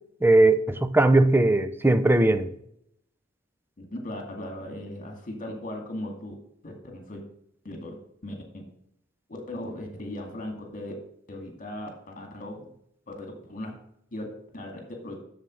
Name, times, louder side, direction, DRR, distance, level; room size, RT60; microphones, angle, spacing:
voice 1, 0.2-2.5, right 2 dB, 10° right, 0.6 m, -19 dB
voice 2, 3.8-6.3 6.6-7.2 7.6-7.9 8.2-8.6 9.3-10.9 11.3-12.7 13.1-13.8 14.1-14.3 14.5-15.1, left 1 dB, 45° left, 2.2 m, -38 dB
7.3 x 7.2 x 6.3 m
head